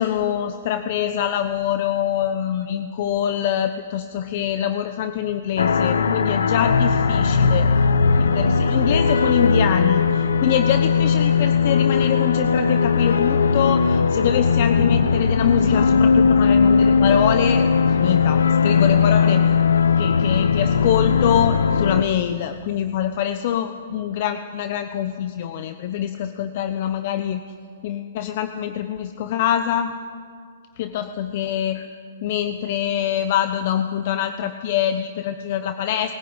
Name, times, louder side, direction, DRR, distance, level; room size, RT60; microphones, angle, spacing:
voice 1, 0.0-7.7 8.2-19.6 20.0-27.4 27.8-30.0 30.8-31.9 32.2-36.1, left 10 dB, 50° left, 9 dB, 1.0 m, -24 dB
sound 1, 5.6-22.0, left 5 dB, 90° left, 1.0 m, -18 dB
20.5 x 15.5 x 9.8 m, 2.2 s
hypercardioid pair, 145°, 0 cm